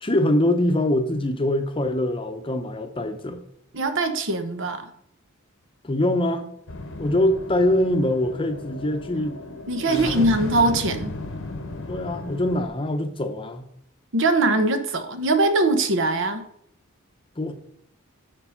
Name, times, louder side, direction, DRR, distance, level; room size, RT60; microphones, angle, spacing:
voice 1, 0.0-3.4 5.8-6.5 7.0-9.4 9.8-10.6 11.9-13.7 17.4-17.5, left 1 dB, 25° left, 7 dB, 0.7 m, -24 dB
voice 2, 3.7-4.9 9.7-11.1 14.1-16.4, right 2 dB, 65° right, 9 dB, 1.0 m, -22 dB
sound 1, 6.7-12.7, left 2 dB, 65° left, 0.9 m, -35 dB
7.1 x 5.4 x 5.6 m, 0.70 s
head